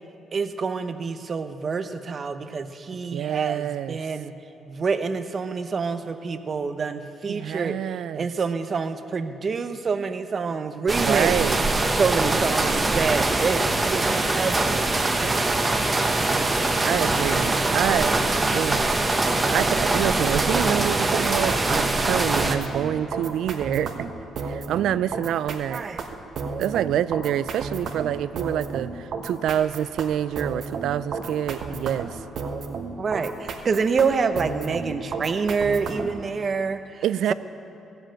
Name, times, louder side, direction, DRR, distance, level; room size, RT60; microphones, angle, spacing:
voice 1, 0.3-4.3 4.7-11.3 12.0-15.4 25.7-26.0 33.0-37.0, right 5 dB, 40° right, 10 dB, 0.8 m, -27 dB
voice 2, 3.1-4.0 7.3-8.3 11.0-11.6 16.8-18.2 18.5-19.0 19.5-24.0 24.5-25.8 26.6-32.2 37.0-37.3, right 11 dB, 80° right, 17 dB, 0.3 m, -26 dB
sound 1, 10.9-22.6, right 2 dB, 20° right, 1.0 m, -23 dB
sound 2, 20.4-36.2, right 4 dB, 60° right, 1.2 m, -33 dB
14.0 x 7.8 x 8.8 m, 2.7 s
cardioid pair, 105°, 0 cm